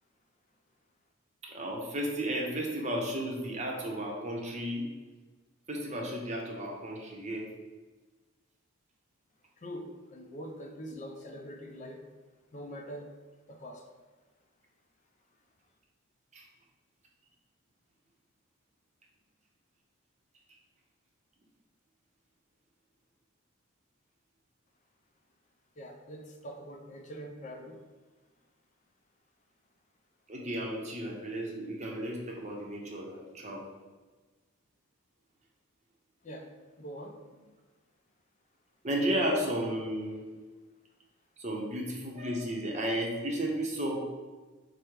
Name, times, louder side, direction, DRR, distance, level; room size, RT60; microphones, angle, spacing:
voice 1, 1.4-4.9 5.7-7.5 16.3-16.4 30.3-33.7 38.8-40.3 41.4-44.1, right 1 dB, 35° right, -1 dB, 0.7 m, -33 dB
voice 2, 9.6-12.0 12.5-13.1 13.5-13.9 25.8-27.8 36.2-36.5 36.8-37.2, equal, 35° left, 3 dB, 0.4 m, -43 dB
5.0 x 2.1 x 4.6 m, 1.3 s
head